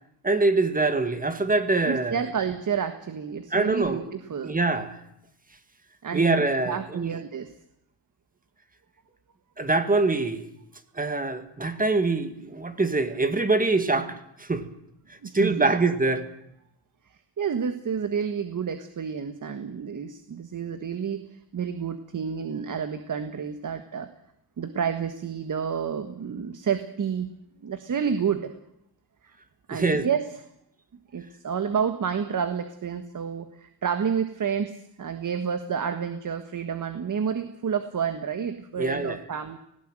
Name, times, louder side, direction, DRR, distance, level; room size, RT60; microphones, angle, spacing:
voice 1, 0.2-2.2 3.5-4.0 4.4-5.0 6.1-7.2 9.6-10.5 11.0-14.6 15.3-16.3 29.7-30.1 38.8-39.2, right 3 dB, 20° right, 9 dB, 2.0 m, -24 dB
voice 2, 1.8-4.6 6.0-7.5 15.2-15.7 17.4-24.1 24.6-27.3 27.6-28.5 29.2-29.3 29.7-30.3 31.1-39.6, right 7 dB, 45° right, 9 dB, 1.6 m, -30 dB
18.5 x 17.0 x 9.1 m, 0.77 s
cardioid pair, 130°, 45 cm